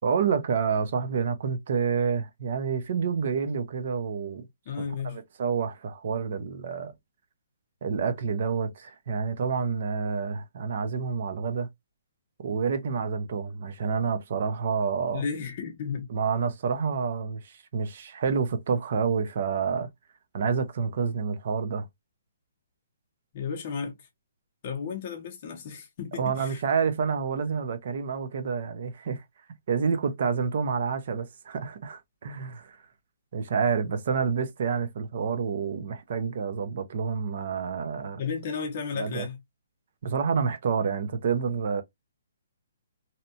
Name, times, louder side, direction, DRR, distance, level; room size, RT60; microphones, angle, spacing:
voice 1, 0.0-4.4 5.0-6.9 7.8-11.7 12.4-15.2 16.1-19.9 20.3-21.9 26.2-29.2 29.7-32.8 33.3-38.2 38.9-39.3 40.0-41.8, right 6 dB, 40° right, 0.4 m, -28 dB
voice 2, 4.7-5.2 15.1-16.1 23.3-24.1 24.6-26.6 38.2-39.4, left 6 dB, 30° left, 0.6 m, -33 dB
2.7 x 2.1 x 2.6 m
hypercardioid pair, 175°, 0 cm